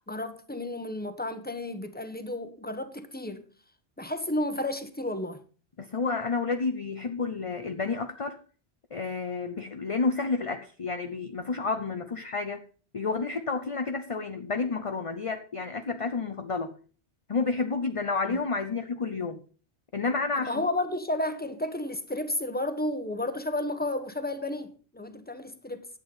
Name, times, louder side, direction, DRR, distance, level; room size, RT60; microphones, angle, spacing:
voice 1, 0.0-3.4 4.0-5.4 18.3-18.4 20.3-25.9, left 1 dB, 10° left, 1.2 m, -32 dB
voice 2, 5.8-8.4 8.9-12.7 12.9-16.8 17.3-19.4 19.9-20.7, left 4 dB, 35° left, 0.8 m, -30 dB
11.5 x 8.6 x 5.5 m
omnidirectional pair, 1.1 m